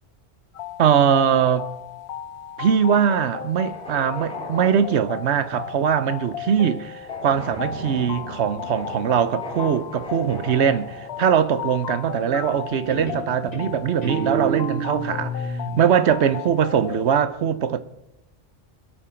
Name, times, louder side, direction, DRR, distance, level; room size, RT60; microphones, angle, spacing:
sound 1, 0.5-17.2, left 10 dB, 75° left, 0.9 m, -36 dB
voice 1, 0.8-1.7 2.6-17.8, right 8 dB, 85° right, 1.1 m, -21 dB
sound 2, 3.2-11.3, equal, 5° left, 3.3 m, -40 dB
Guitar, 7.1-10.7 12.3-12.6 12.9-15.8, right 3 dB, 35° left, 4.2 m, -32 dB
22.0 x 8.9 x 4.4 m
omnidirectional pair, 1.1 m